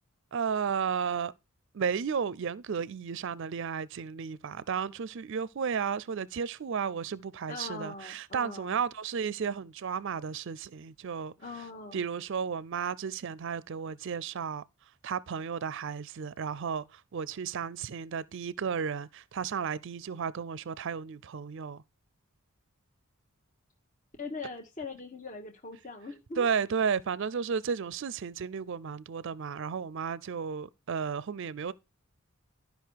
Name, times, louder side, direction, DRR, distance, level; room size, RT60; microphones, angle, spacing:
voice 1, 0.3-1.3 1.7-11.3 11.9-14.6 15.0-21.8 26.4-31.7, right 6 dB, 60° right, 0.4 m, -33 dB
voice 2, 7.5-8.7 11.4-12.0 24.2-26.5, left 3 dB, 35° left, 1.1 m, -41 dB
12.5 x 5.3 x 4.6 m
head